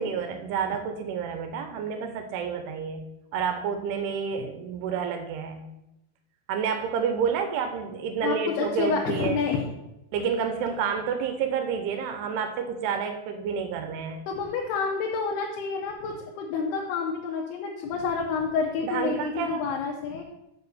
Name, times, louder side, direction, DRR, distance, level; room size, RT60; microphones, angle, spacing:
voice 1, 0.0-3.1 3.3-5.6 6.5-9.4 10.1-14.2 18.8-19.6, right 6 dB, 85° right, 6 dB, 2.8 m, -29 dB
voice 2, 8.2-9.6 14.3-20.2, left 5 dB, 85° left, 0 dB, 2.9 m, -29 dB
7.0 x 4.8 x 6.8 m, 0.90 s
omnidirectional pair, 4.6 m